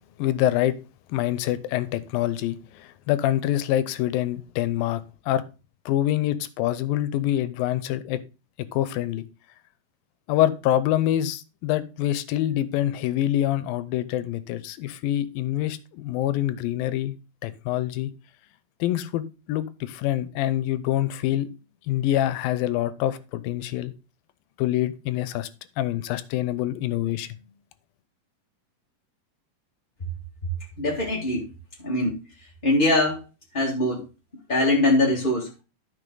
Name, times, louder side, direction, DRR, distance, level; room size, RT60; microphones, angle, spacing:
voice 1, 0.2-0.8 1.1-5.4 5.9-8.2 8.7-9.2 10.3-17.1 17.4-18.1 18.8-21.5 21.9-23.9 24.6-25.5 25.8-27.4, left 13 dB, 90° left, 2.5 m, -25 dB
voice 2, 30.8-31.4 31.8-32.2 32.6-33.2 33.5-34.0 34.5-35.5, left 1 dB, 25° left, 1.2 m, -22 dB
12.5 x 5.9 x 3.9 m
omnidirectional pair, 4.1 m